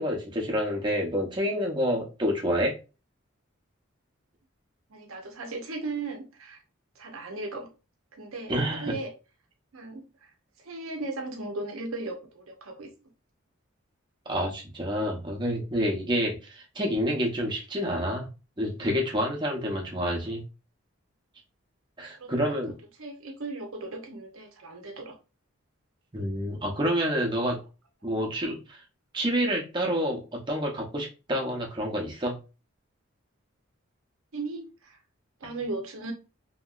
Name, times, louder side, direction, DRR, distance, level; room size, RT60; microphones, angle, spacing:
voice 1, 0.0-2.7 8.5-8.9 14.3-18.3 18.6-20.4 22.0-22.7 26.1-27.6 28.0-28.8 29.1-32.4 35.4-35.5, equal, 20° right, 0.7 m, -28 dB
voice 2, 4.9-6.6 7.0-7.7 8.1-9.1 9.7-10.0 10.6-12.9 22.2-22.6 23.0-25.2 34.3-35.0 35.4-36.1, right 3 dB, 75° right, 0.7 m, -37 dB
2.9 x 2.7 x 2.3 m
head